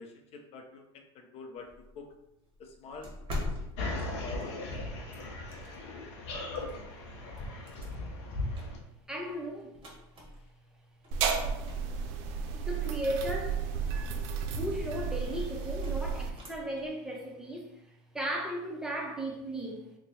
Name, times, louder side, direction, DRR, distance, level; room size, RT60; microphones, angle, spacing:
voice 1, 0.0-1.7 1.9-2.1 2.6-4.6, left 4 dB, 45° left, 4 dB, 0.7 m, -47 dB
sound 1, 1.6-6.0 6.5-10.7 11.0-16.9, left 1 dB, 40° right, 1.1 m, -45 dB
sound 2, 3.8-8.8, left 2 dB, 85° left, 0.7 m, -37 dB
voice 2, 9.1-9.8 12.5-13.6 14.5-17.7 18.1-20.0, right 1 dB, 5° right, -1 dB, 0.7 m, -36 dB
sound 3, 11.1-16.3, right 6 dB, 65° right, 0.5 m, -33 dB
2.9 x 2.2 x 4.1 m, 0.87 s
supercardioid pair, 105°, 15 cm